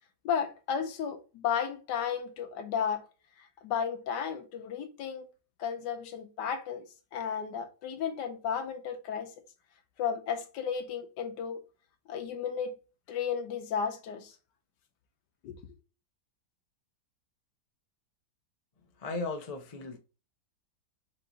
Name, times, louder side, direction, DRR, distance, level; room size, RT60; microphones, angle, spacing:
voice 1, 0.2-3.0 3.4-5.3 5.6-6.8 7.1-9.3 10.0-11.6 12.1-12.7 13.1-14.3 15.4-15.6, left 7 dB, 75° left, 1.4 m, -33 dB
voice 2, 19.0-20.0, left 3 dB, 50° left, 0.4 m, -36 dB
4.6 x 2.9 x 3.9 m
omnidirectional pair, 1.9 m